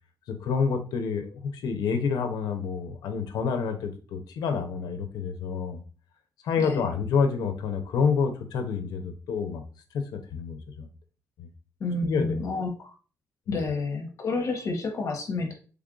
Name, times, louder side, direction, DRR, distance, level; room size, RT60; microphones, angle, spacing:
voice 1, 0.3-5.8 6.4-9.6 9.9-10.9 11.4-11.5 12.0-12.4 13.5-13.6, left 5 dB, 80° left, 6 dB, 0.6 m, -28 dB
voice 2, 11.8-12.9 13.5-15.5, left 3 dB, 50° left, 3 dB, 0.9 m, -29 dB
3.3 x 2.4 x 3.7 m, 0.37 s
cardioid pair, 140°, 7 cm